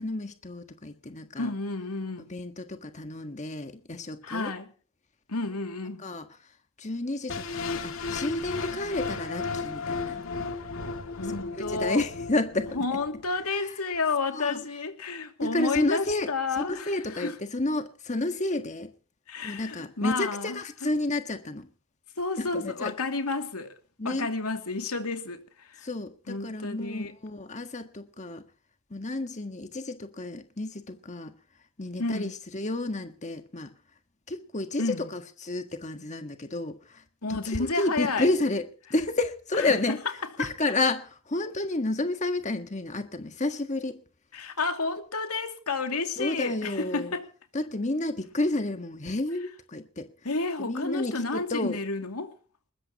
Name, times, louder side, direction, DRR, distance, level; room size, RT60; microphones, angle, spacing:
voice 1, 0.0-1.5 2.2-4.5 6.0-6.3 6.8-10.2 11.6-12.8 14.3-14.6 15.4-18.9 19.4-21.7 22.4-22.9 24.0-24.3 25.8-28.4 28.9-31.3 31.8-33.7 34.3-37.0 37.3-40.0 40.4-44.0 46.2-47.1 47.5-50.1 50.6-51.8, left 2 dB, 30° left, 1.6 m, -31 dB
voice 2, 1.4-2.3 4.2-4.7 5.3-6.0 11.2-12.0 12.7-17.3 19.3-20.9 22.2-23.7 24.0-25.9 26.3-27.1 32.0-32.3 34.8-35.1 37.2-38.3 39.6-40.0 40.4-40.5 44.3-47.3 50.2-52.3, left 3 dB, 85° left, 2.6 m, -31 dB
sound 1, 7.3-13.3, left 4 dB, 65° left, 2.5 m, -34 dB
21.0 x 20.5 x 3.0 m
head